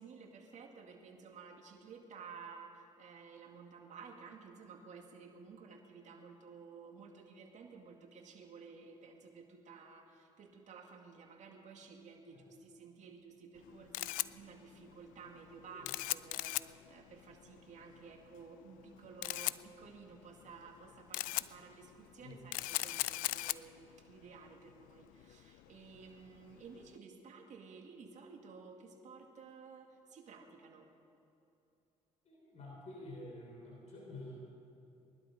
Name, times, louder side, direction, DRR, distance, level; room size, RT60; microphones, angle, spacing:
voice 1, 0.0-30.9, right 5 dB, 60° right, 2 dB, 2.2 m, -54 dB
Camera, 13.6-26.9, left 18 dB, 75° left, 0.4 m, -41 dB
voice 2, 32.3-34.3, left 2 dB, 50° left, -2 dB, 3.6 m, -49 dB
20.5 x 12.0 x 5.3 m, 2.9 s
hypercardioid pair, 55°, 14 cm